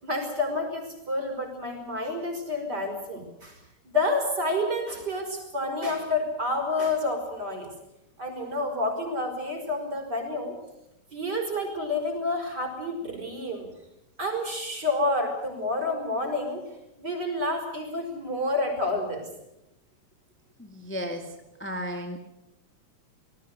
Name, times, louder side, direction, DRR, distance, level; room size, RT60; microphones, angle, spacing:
voice 1, 0.0-3.5 3.8-7.7 8.2-10.6 11.1-13.7 14.2-16.6 17.0-19.3, left 2 dB, 30° right, 3 dB, 6.1 m, -29 dB
voice 2, 20.6-21.2 21.6-22.2, equal, 5° left, 3 dB, 1.4 m, -33 dB
26.5 x 19.5 x 6.8 m, 0.87 s
omnidirectional pair, 3.9 m